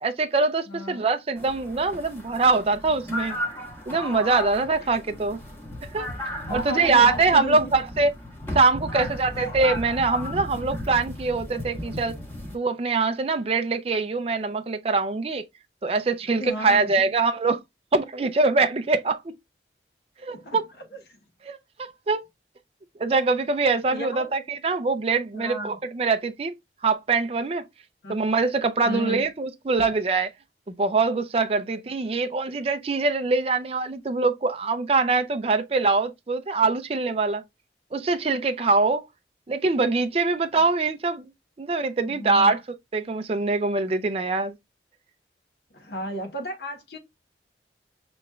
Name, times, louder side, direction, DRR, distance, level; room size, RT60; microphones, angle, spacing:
voice 1, 0.0-3.4 3.9-5.4 5.9-8.1 8.5-12.2 12.5-15.4 15.8-17.6 17.9-19.2 20.2-20.6 21.4-22.2 23.0-26.5 26.8-27.7 28.1-30.3 30.8-37.4 37.9-39.1 39.5-41.2 41.6-42.6 42.9-44.6, right 3 dB, 35° right, 0.4 m, -23 dB
voice 2, 0.7-1.1 4.8-4.9 6.4-7.8 9.3-9.5 16.4-16.9 20.3-20.6 21.1-21.2 23.9-24.3 25.3-25.8 28.0-28.2 28.8-29.2 42.0-42.5 45.7-47.0, equal, 65° left, 1.0 m, -34 dB
sound 1, 1.4-12.6, left 1 dB, 15° left, 1.0 m, -35 dB
6.1 x 3.0 x 2.2 m
head